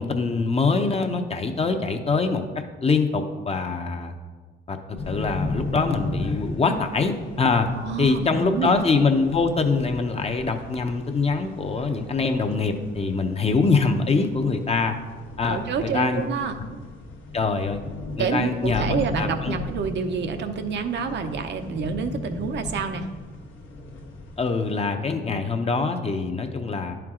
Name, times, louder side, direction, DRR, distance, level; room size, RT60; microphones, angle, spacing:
voice 1, 0.0-4.1 4.7-4.8 5.1-7.7 8.0-15.0 15.4-16.2 17.3-17.8 18.2-19.6 24.4-27.0, left 4 dB, 30° left, 6 dB, 0.7 m, -24 dB
sound 1, 4.9-24.8, left 2 dB, 80° left, 1.3 m, -36 dB
voice 2, 7.8-8.7 15.5-16.8 18.2-23.1, right 6 dB, 65° right, 6 dB, 0.7 m, -28 dB
10.5 x 4.5 x 3.7 m, 1.4 s
cardioid pair, 90°, 20 cm